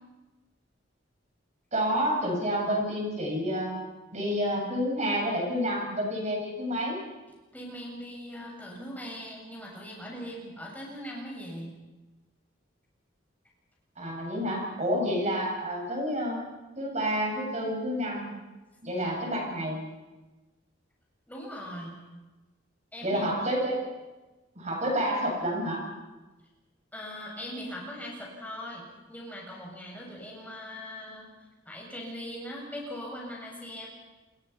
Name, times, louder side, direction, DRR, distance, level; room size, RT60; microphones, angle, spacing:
voice 1, 1.7-3.8 4.1-7.0 14.0-16.4 16.7-18.4 18.8-19.8 23.0-23.8 24.6-25.8, equal, 35° right, 0 dB, 7.7 m, -29 dB
voice 2, 7.5-11.7 21.3-22.0 22.9-23.5 26.9-28.8 29.1-31.3 31.7-33.9, equal, 10° left, -2 dB, 7.8 m, -40 dB
29.5 x 22.0 x 6.0 m, 1.2 s
head